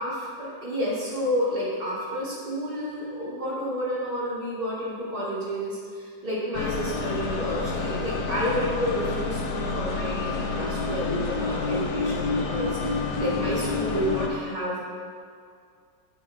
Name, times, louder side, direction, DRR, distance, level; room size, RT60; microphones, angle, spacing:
voice 1, 0.0-14.8, equal, 30° right, -7 dB, 2.3 m, -30 dB
sound 1, 6.5-14.3, left 3 dB, 60° left, 1.2 m, -28 dB
7.9 x 5.7 x 5.0 m, 2.2 s
omnidirectional pair, 2.1 m